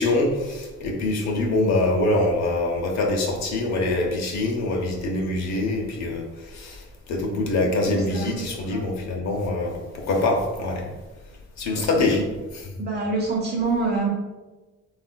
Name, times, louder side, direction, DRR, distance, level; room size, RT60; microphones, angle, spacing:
voice 1, 0.0-6.8 7.1-10.8 11.6-12.2 12.7-12.8, left 2 dB, 65° left, 0 dB, 0.7 m, -24 dB
voice 2, 7.5-8.8 11.6-12.3 12.8-14.1, right 3 dB, 35° right, -2 dB, 0.8 m, -28 dB
3.5 x 2.4 x 2.2 m, 1.2 s
cardioid pair, 90°, 30 cm